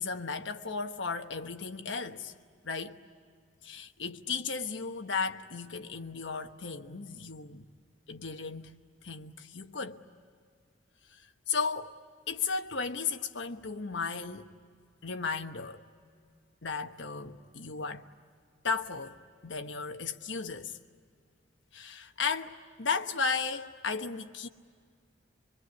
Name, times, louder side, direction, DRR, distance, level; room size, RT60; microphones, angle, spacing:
voice 1, 0.0-2.3 2.6-3.0 3.6-7.6 8.1-10.0 11.5-12.0 12.3-14.5 15.0-15.8 16.6-18.0 18.6-20.8 21.7-24.5, left 5 dB, 70° left, 1.2 m, -35 dB
26.0 x 22.5 x 9.5 m
head